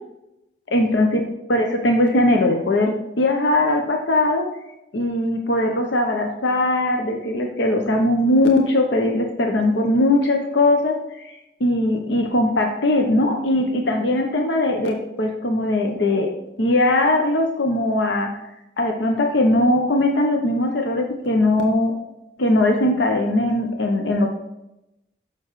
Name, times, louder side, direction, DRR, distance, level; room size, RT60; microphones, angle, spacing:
voice 1, 0.7-1.2 1.5-4.4 4.9-16.3 16.6-18.3 18.8-21.9 22.4-24.3, left 1 dB, 75° left, 3 dB, 0.7 m, -20 dB
6.7 x 6.0 x 3.1 m, 0.89 s
head